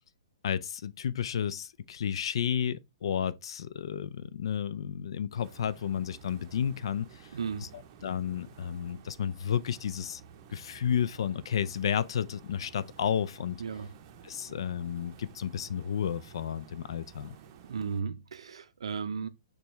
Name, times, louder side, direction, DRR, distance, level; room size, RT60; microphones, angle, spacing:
voice 1, 0.4-7.3 7.6-10.2 10.5-13.6 14.2-17.4, left 8 dB, 65° left, 0.4 m, -32 dB
sound 1, 5.4-18.0, right 7 dB, 40° right, 0.6 m, -53 dB
voice 2, 7.3-7.7 13.6-14.0 17.6-19.3, right 5 dB, 80° right, 0.5 m, -35 dB
6.7 x 2.3 x 3.0 m
hypercardioid pair, 140°, 3 cm